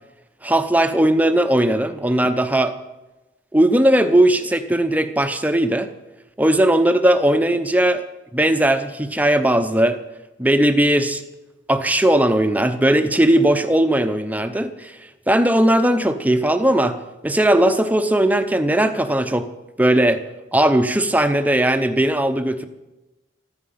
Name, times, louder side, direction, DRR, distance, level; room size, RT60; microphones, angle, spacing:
voice 1, 0.4-2.8 3.5-5.9 6.4-8.0 8.3-10.0 10.4-11.2 11.7-15.0 15.3-19.5 19.8-20.2 20.5-22.6, right 1 dB, 10° right, 8 dB, 0.8 m, -18 dB
14.5 x 14.0 x 5.8 m, 1.0 s
head